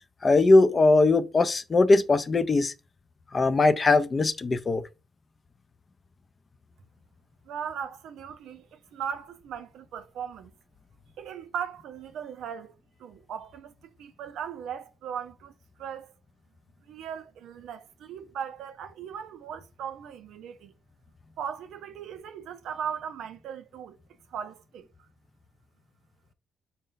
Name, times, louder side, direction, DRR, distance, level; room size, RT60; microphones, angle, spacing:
voice 1, 0.2-2.7 3.3-4.8, left 3 dB, 35° left, 0.4 m, -20 dB
voice 2, 7.5-10.5 11.2-12.7 13.0-13.7 14.0-15.5 15.8-16.1 16.9-20.7 21.4-24.0 24.3-24.9, right 8 dB, 80° right, 0.4 m, -38 dB
4.0 x 2.0 x 3.8 m
cardioid pair, 90°, 0 cm